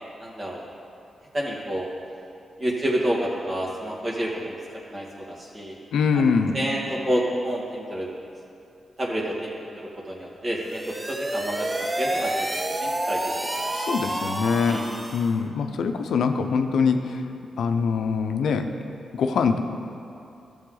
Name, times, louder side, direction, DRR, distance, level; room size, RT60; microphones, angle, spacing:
voice 1, 0.2-0.6 1.3-1.9 2.6-4.6 4.9-5.8 6.1-6.2 6.5-8.1 9.0-9.7 10.1-13.6 14.7-14.8, equal, 40° right, -4 dB, 2.3 m, -29 dB
voice 2, 5.9-6.6 13.7-14.8 15.1-17.2 17.6-18.7 19.1-19.6, left 5 dB, 85° left, 6 dB, 0.6 m, -23 dB
sound 1, 10.6-15.4, right 1 dB, 20° right, 0.7 m, -29 dB
13.0 x 7.1 x 3.9 m, 2.5 s
cardioid pair, 65°, 0 cm